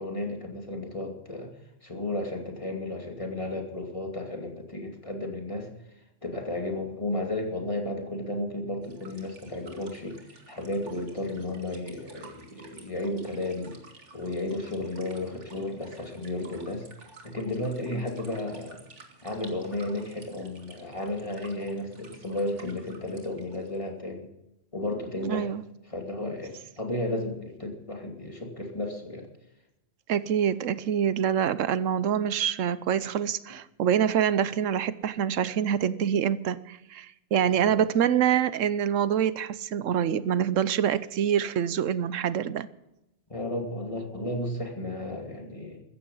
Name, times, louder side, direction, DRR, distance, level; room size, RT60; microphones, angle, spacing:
voice 1, 0.0-1.5 1.8-5.7 6.2-10.2 10.5-13.8 14.1-16.9 17.2-18.8 19.2-24.3 24.7-25.5 25.8-29.3 37.4-37.8 43.3-45.8, left 1 dB, 25° left, 2 dB, 2.6 m, -33 dB
sound 1, 8.8-23.8, right 3 dB, 65° right, 2.6 m, -52 dB
voice 2, 25.3-25.6 30.1-42.7, right 9 dB, 85° right, 16 dB, 1.1 m, -26 dB
15.5 x 14.5 x 5.5 m, 0.90 s
omnidirectional pair, 1.3 m